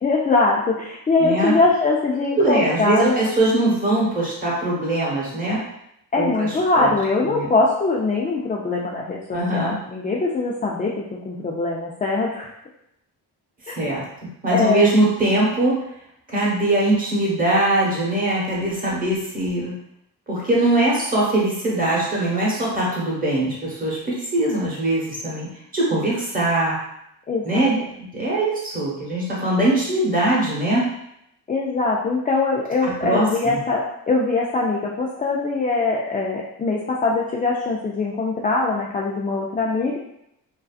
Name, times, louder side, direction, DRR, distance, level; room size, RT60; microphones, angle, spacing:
voice 1, 0.0-3.2 6.1-12.5 13.7-13.8 14.5-14.8 27.3-27.7 31.5-40.0, left 3 dB, 20° left, -3 dB, 0.3 m, -22 dB
voice 2, 1.2-1.6 2.3-5.6 6.2-6.9 7.2-7.5 9.3-9.8 13.6-15.8 16.3-19.8 20.3-26.8 27.4-27.8 28.1-30.8 32.8-33.6, right 1 dB, 20° right, -6 dB, 1.0 m, -22 dB
2.6 x 2.3 x 2.3 m, 0.78 s
cardioid pair, 90°, 41 cm